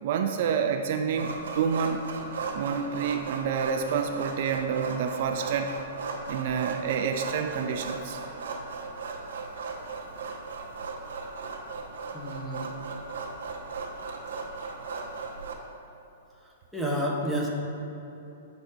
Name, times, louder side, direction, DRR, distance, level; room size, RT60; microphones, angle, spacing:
voice 1, 0.0-2.0 2.5-5.8 6.3-8.2, right 6 dB, 55° right, 5 dB, 0.4 m, -28 dB
sound 1, 1.1-15.5, right 4 dB, 80° right, 0.9 m, -37 dB
voice 2, 12.1-12.7 16.4-17.5, equal, ahead, -4 dB, 0.9 m, -30 dB
8.1 x 4.1 x 4.3 m, 3.0 s
hypercardioid pair, 150°, 0 cm